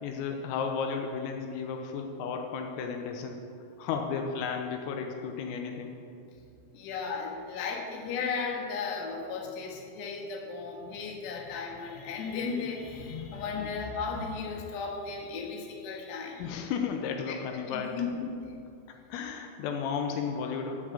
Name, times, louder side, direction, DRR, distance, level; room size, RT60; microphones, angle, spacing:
voice 1, 0.0-3.4 3.8-6.0 13.6-13.7 16.4-18.0 19.1-20.9, left 6 dB, 85° left, 3 dB, 3.5 m, -33 dB
voice 2, 6.7-16.6 17.3-17.4 17.7-18.3, left 5 dB, 65° left, -1 dB, 3.4 m, -35 dB
13.0 x 6.2 x 8.8 m, 2.4 s
omnidirectional pair, 5.9 m